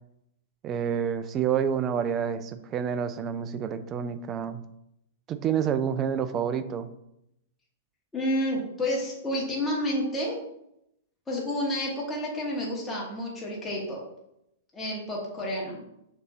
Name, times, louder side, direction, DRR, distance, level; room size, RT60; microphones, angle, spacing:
voice 1, 0.6-4.6 5.3-6.9, right 8 dB, 25° right, 11 dB, 0.3 m, -28 dB
voice 2, 8.1-10.4 11.3-14.0 14.7-15.8, left 1 dB, 15° left, -4 dB, 1.2 m, -30 dB
6.5 x 2.8 x 2.5 m, 0.81 s
figure-of-eight pair, 105°, 0 cm